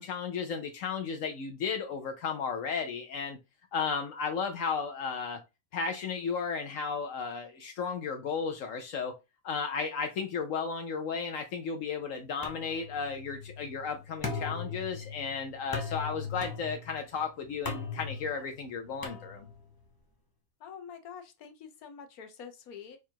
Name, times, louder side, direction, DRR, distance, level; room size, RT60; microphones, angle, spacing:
voice 1, 0.0-3.4 3.7-5.4 5.7-9.1 9.4-19.5, left 5 dB, 70° left, 1.0 m, -34 dB
sound 1, 12.4-19.8, left 4 dB, 20° left, 0.7 m, -40 dB
voice 2, 20.6-23.0, left 7 dB, 85° left, 1.3 m, -46 dB
4.8 x 2.4 x 4.4 m
omnidirectional pair, 1.5 m